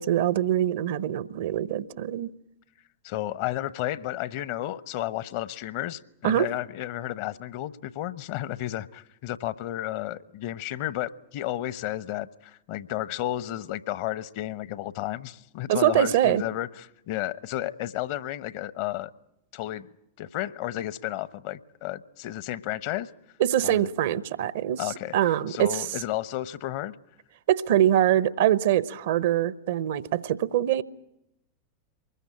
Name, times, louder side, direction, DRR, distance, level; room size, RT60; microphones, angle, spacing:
voice 1, 0.0-2.3 6.2-6.5 15.7-16.4 23.4-25.9 27.5-30.8, right 11 dB, 60° right, 0.9 m, -24 dB
voice 2, 3.0-19.1 19.5-19.9 20.2-23.1 23.6-23.9 24.8-25.1 25.5-27.0, left 14 dB, 50° left, 1.0 m, -32 dB
24.0 x 21.0 x 8.7 m
figure-of-eight pair, 90°, 0 cm